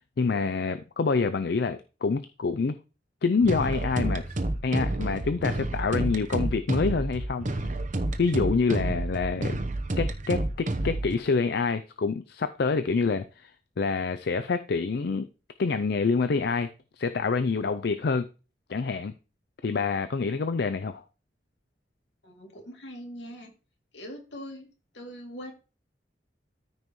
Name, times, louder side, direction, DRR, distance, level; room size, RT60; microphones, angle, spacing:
voice 1, 0.2-2.8 3.2-4.3 4.6-7.6 8.2-9.6 10.0-13.5 13.8-15.3 15.6-16.7 17.0-18.3 18.7-19.1 19.6-21.0, left 4 dB, 65° left, 0.5 m, -27 dB
sound 1, 3.4-11.1, right 1 dB, 45° right, 0.9 m, -29 dB
voice 2, 22.2-23.5 23.9-25.5, equal, 85° left, 2.8 m, -42 dB
13.5 x 5.4 x 3.1 m
head